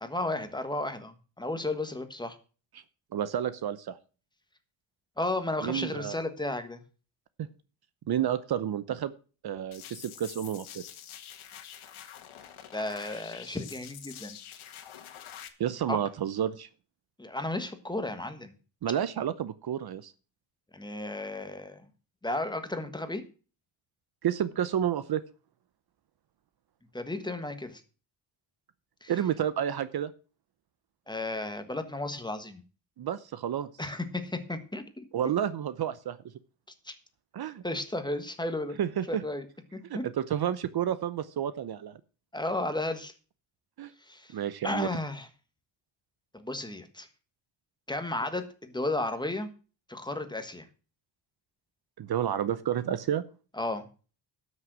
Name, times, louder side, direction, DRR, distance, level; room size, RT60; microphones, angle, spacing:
voice 1, 0.0-2.4 5.2-6.8 12.7-14.4 15.9-16.0 17.2-18.5 20.7-21.9 22.2-23.2 26.9-27.8 29.0-29.1 31.1-32.6 33.8-34.8 36.8-36.9 37.6-38.8 39.1-39.5 39.7-40.0 42.3-43.1 44.1-44.3 44.6-45.3 46.3-47.1 47.9-49.5 49.9-50.7 53.6-53.8, left 2 dB, 10° left, 8 dB, 1.4 m, -33 dB
voice 2, 3.1-4.0 5.6-6.2 8.1-9.1 9.4-10.8 15.6-16.7 18.8-20.1 24.2-25.2 29.1-30.1 33.0-33.7 35.1-36.2 37.3-37.6 38.8-39.2 39.9-42.0 43.8-43.9 44.3-44.9 52.0-53.2, right 10 dB, 50° right, 15 dB, 0.8 m, -30 dB
sound 1, 9.7-15.5, left 10 dB, 80° left, 1.8 m, -46 dB
12.5 x 6.5 x 6.1 m, 0.36 s
cardioid pair, 130°, 48 cm